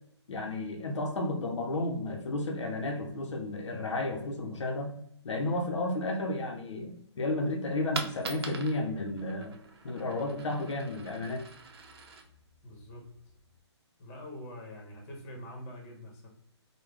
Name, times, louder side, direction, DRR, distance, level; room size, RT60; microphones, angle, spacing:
voice 1, 0.3-4.9 5.2-9.5 9.8-11.5, left 2 dB, 85° left, 2 dB, 0.6 m, -32 dB
Coin (dropping), 7.9-13.6, right 4 dB, 60° right, 0.7 m, -44 dB
voice 2, 12.6-13.1 14.0-16.3, left 1 dB, 35° left, 1 dB, 1.1 m, -45 dB
3.2 x 2.2 x 3.5 m, 0.71 s
hypercardioid pair, 155°, 15 cm